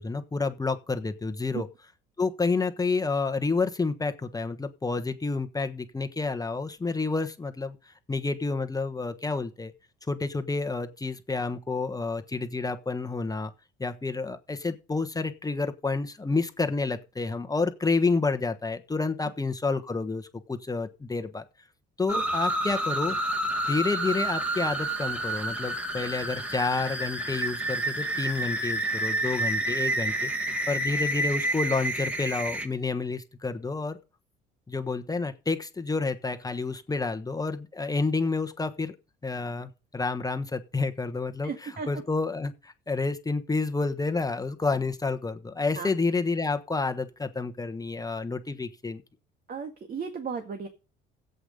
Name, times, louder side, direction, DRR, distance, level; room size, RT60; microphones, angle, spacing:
voice 1, 0.0-1.7 2.2-9.7 10.1-13.5 13.8-21.4 22.0-23.1 23.7-34.0 34.7-38.9 39.2-49.0, left 3 dB, 15° left, 1.3 m, -29 dB
schrei steigend + brutal, 22.1-32.7, right 1 dB, 5° right, 2.4 m, -29 dB
voice 2, 41.4-41.9 45.8-45.9 49.5-50.7, right 5 dB, 45° right, 2.0 m, -34 dB
11.5 x 8.3 x 5.3 m
supercardioid pair, 75°, 21 cm